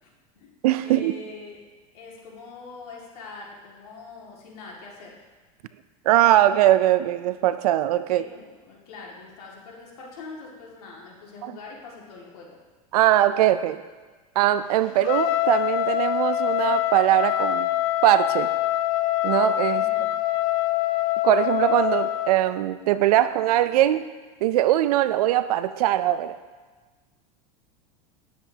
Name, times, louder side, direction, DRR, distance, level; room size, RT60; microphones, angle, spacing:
voice 1, 0.0-0.5 0.8-1.6 1.9-5.1 8.1-12.6 14.9-15.2 19.7-20.1, left 4 dB, 80° left, -3 dB, 2.1 m, -43 dB
voice 2, 0.6-1.1 6.1-8.3 11.4-11.6 12.9-13.8 14.4-17.7 18.0-18.5 19.2-19.8 21.2-24.0 24.4-26.3, right 13 dB, 85° right, 13 dB, 0.5 m, -21 dB
Trumpet, 15.0-22.3, left 15 dB, 60° left, 0.5 m, -24 dB
10.0 x 7.4 x 2.8 m, 1.3 s
supercardioid pair, 130°, 19 cm